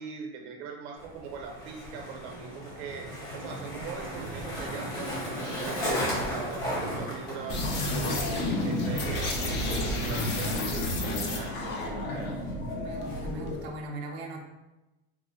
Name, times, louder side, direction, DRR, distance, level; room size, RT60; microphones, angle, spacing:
voice 1, 0.0-5.1 5.4-12.3, right 5 dB, 90° right, 2 dB, 0.8 m, -41 dB
Skateboard, 1.0-13.7, equal, 55° left, 1.4 m, -37 dB
sound 1, 7.5-13.7, left 1 dB, 35° left, 0.4 m, -30 dB
voice 2, 12.8-14.4, right 2 dB, 35° right, 0 dB, 0.4 m, -39 dB
4.4 x 2.0 x 2.7 m, 1.0 s
cardioid pair, 165°, 32 cm